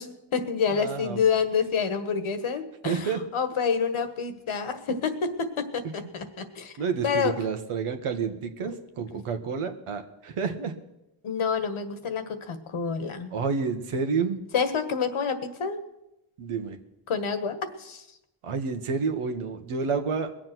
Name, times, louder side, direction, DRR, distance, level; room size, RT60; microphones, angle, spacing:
voice 1, 0.0-6.7 7.0-7.3 8.7-8.8 9.1-9.2 11.2-13.3 14.5-15.8 17.1-18.0, left 6 dB, 75° left, 9 dB, 1.6 m, -28 dB
voice 2, 0.7-1.2 2.8-3.2 5.8-6.1 6.8-10.7 13.3-14.4 16.4-16.8 18.4-20.3, right 5 dB, 90° right, 6 dB, 1.4 m, -29 dB
20.5 x 7.6 x 6.1 m, 0.90 s
cardioid pair, 50°, 50 cm